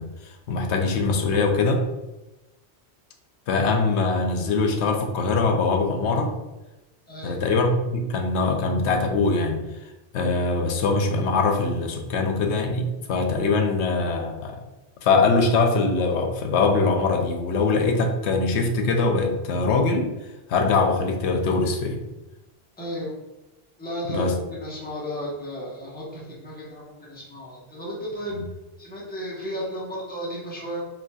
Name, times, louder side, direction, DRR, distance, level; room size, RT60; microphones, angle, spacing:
voice 1, 0.0-1.8 3.5-6.3 7.2-9.6 10.1-14.6 15.0-20.1 20.5-22.0 24.1-24.4 28.3-28.4, left 3 dB, 90° left, 4 dB, 0.9 m, -22 dB
voice 2, 7.1-7.4 22.8-23.1 23.8-28.4 28.8-30.8, equal, 10° left, -6 dB, 1.0 m, -34 dB
5.0 x 3.3 x 2.3 m, 1.0 s
omnidirectional pair, 1.1 m